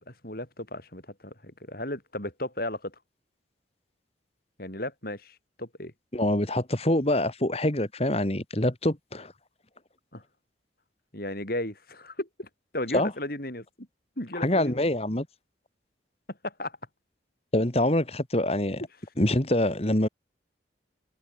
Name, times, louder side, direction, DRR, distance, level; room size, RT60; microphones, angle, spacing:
voice 1, 0.0-2.9 4.6-5.9 10.1-10.2 11.1-12.5 12.7-13.9 14.2-14.9 16.4-16.8, left 1 dB, 50° left, 6.8 m, -35 dB
voice 2, 6.1-9.3 12.9-13.1 14.4-15.3 17.5-18.8 19.2-20.1, left 1 dB, 30° left, 2.2 m, -25 dB
head